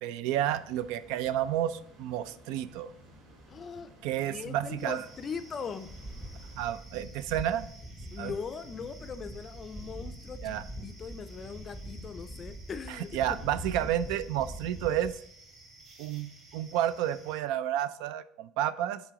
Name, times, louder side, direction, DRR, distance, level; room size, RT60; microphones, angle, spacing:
voice 1, 0.0-2.9 4.0-5.0 6.6-7.7 8.2-8.3 10.4-10.6 13.1-15.1 16.0-19.0, right 11 dB, 75° right, 15 dB, 0.4 m, -31 dB
sound 1, 0.5-6.5, equal, 50° right, 2.4 m, -55 dB
voice 2, 3.5-3.9 4.3-5.9 8.1-13.2 13.5-13.6, left 6 dB, 25° left, 10 dB, 0.4 m, -40 dB
sound 2, 4.8-17.4, right 2 dB, 35° right, 1.6 m, -55 dB
sound 3, 5.9-15.1, equal, 10° right, 0.7 m, -43 dB
7.4 x 3.8 x 5.1 m, 0.68 s
cardioid pair, 165°, 0 cm